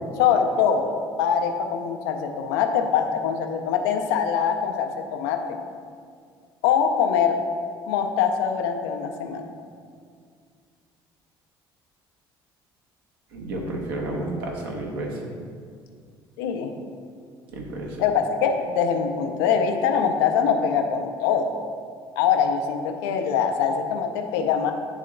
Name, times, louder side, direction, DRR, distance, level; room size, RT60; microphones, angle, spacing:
voice 1, 0.2-5.6 6.6-7.4 7.9-9.5 16.4-16.7 18.0-21.5 22.2-24.7, left 7 dB, 70° left, 5 dB, 0.5 m, -23 dB
voice 2, 13.3-15.1 17.5-17.9, right 2 dB, 70° right, -1 dB, 1.0 m, -31 dB
8.8 x 3.6 x 3.7 m, 2.1 s
figure-of-eight pair, 50°, 13 cm